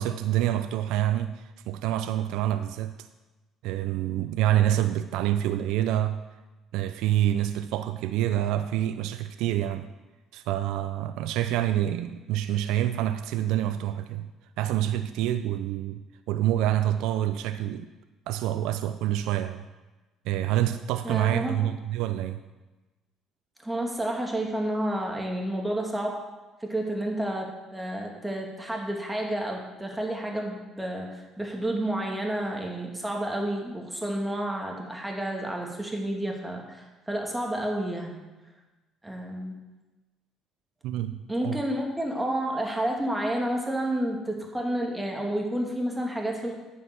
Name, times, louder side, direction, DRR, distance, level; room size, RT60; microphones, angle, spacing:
voice 1, 0.0-3.1 3.6-6.2 6.7-9.9 10.3-14.3 14.6-16.0 16.3-17.9 18.3-19.7 20.2-22.4 40.8-41.6, right 12 dB, 75° right, 0.5 m, -27 dB
voice 2, 21.0-21.5 23.6-26.2 26.6-27.5 27.7-38.2 39.0-39.5 41.3-46.6, right 1 dB, 10° right, 2.5 m, -30 dB
9.6 x 5.9 x 6.1 m
supercardioid pair, 70°, 0 cm